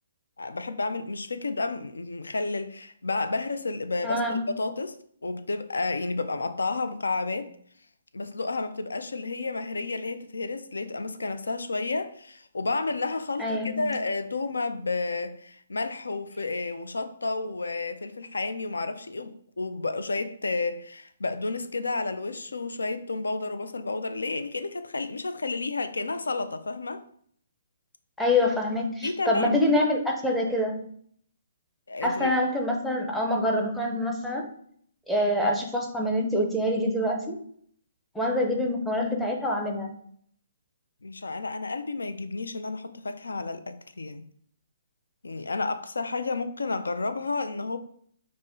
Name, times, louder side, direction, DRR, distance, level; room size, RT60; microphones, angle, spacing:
voice 1, 0.4-5.0 5.2-7.5 8.1-27.0 29.0-29.5 31.9-32.3 41.0-44.3 45.2-47.8, left 3 dB, 85° left, 0.3 m, -31 dB
voice 2, 4.0-4.5 13.4-13.8 28.2-30.8 32.0-34.5 35.1-37.4 38.1-39.9, left 1 dB, 5° left, 0.5 m, -25 dB
5.2 x 2.1 x 2.6 m
hypercardioid pair, 140°, 0 cm